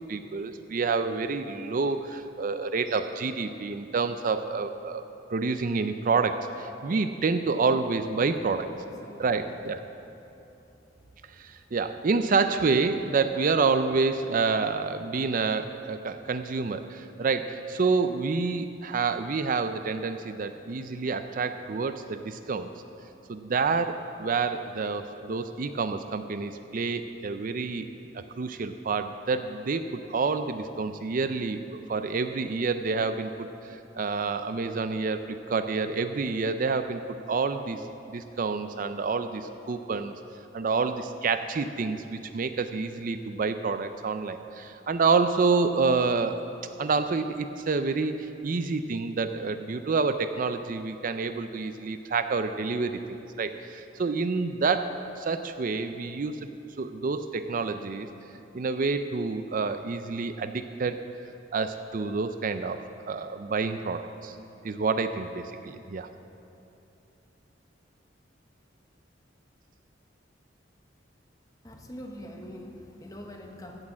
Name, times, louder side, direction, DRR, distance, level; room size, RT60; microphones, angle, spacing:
voice 1, 0.1-5.0 5.3-8.7 9.2-9.8 11.3-22.7 23.3-27.9 28.1-33.5 34.0-37.0 37.3-40.1 40.5-46.5 46.8-56.4 56.8-58.1 58.5-61.0 61.5-62.8 63.1-64.4 64.6-66.1, right 4 dB, 45° right, 9 dB, 0.4 m, -28 dB
voice 2, 8.5-9.6 71.6-73.8, equal, 20° left, 2 dB, 1.2 m, -44 dB
16.0 x 6.5 x 7.3 m, 2.9 s
head